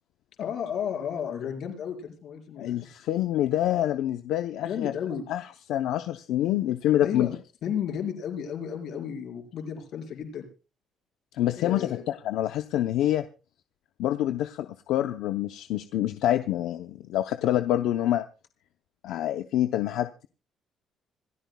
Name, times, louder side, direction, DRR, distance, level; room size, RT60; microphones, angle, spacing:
voice 1, 0.4-2.8 4.6-5.2 7.0-7.3 7.6-10.5 11.6-12.0, left 8 dB, 55° left, 3 dB, 4.4 m, -33 dB
voice 2, 2.6-4.9 5.3-5.4 5.7-7.3 11.3-11.9 12.2-13.2 14.0-18.2 19.0-20.3, left 12 dB, 80° left, 8 dB, 0.7 m, -26 dB
26.5 x 13.5 x 2.3 m, 0.34 s
cardioid pair, 180°, 0 cm